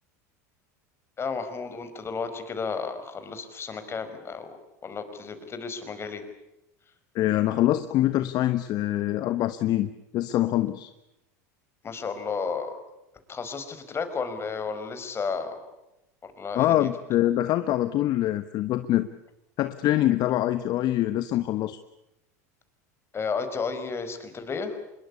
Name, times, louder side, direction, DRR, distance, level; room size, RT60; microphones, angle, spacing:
voice 1, 1.2-4.5 4.8-6.2 11.8-12.8 13.3-15.6 16.4-16.9 23.1-24.8, left 5 dB, 30° left, 9 dB, 5.0 m, -32 dB
voice 2, 7.1-10.9 16.5-19.1 19.6-21.8, left 14 dB, 50° left, 11 dB, 1.2 m, -24 dB
25.5 x 22.0 x 8.4 m, 0.90 s
hypercardioid pair, 90°, 9 cm